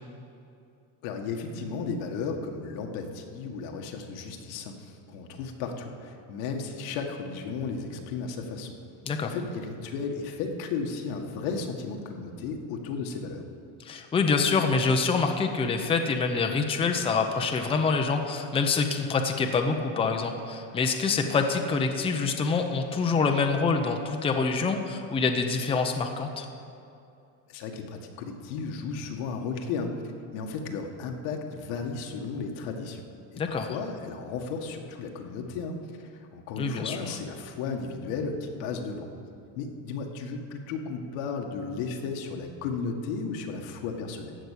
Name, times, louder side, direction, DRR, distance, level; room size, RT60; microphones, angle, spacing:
voice 1, 1.0-8.7 9.2-13.4 27.5-30.0 30.3-39.1 39.6-44.4, left 4 dB, 85° left, 3 dB, 1.7 m, -34 dB
voice 2, 13.8-26.5 33.4-33.7 36.6-37.1, left 4 dB, 15° left, 4 dB, 0.7 m, -26 dB
15.0 x 6.1 x 8.3 m, 2.6 s
cardioid pair, 155°, 41 cm